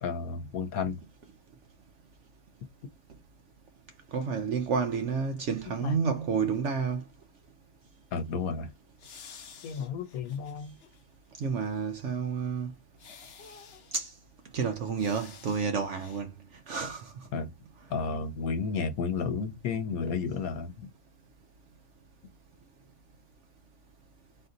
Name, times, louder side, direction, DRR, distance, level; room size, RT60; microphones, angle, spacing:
voice 1, 0.0-1.0 5.8-6.0 8.1-8.7 9.6-10.8 17.3-17.5 17.9-20.9, left 5 dB, 80° left, 1.2 m, -32 dB
voice 2, 4.1-7.0 11.4-12.7 13.9-14.1 14.5-16.3 16.7-17.1, right 5 dB, 65° right, 0.9 m, -30 dB
sound 1, 9.0-11.0 11.4-11.5 13.0-14.0 15.0-15.7 15.9-16.2, left 6 dB, 55° left, 0.9 m, -51 dB
4.2 x 2.7 x 3.8 m
omnidirectional pair, 1.5 m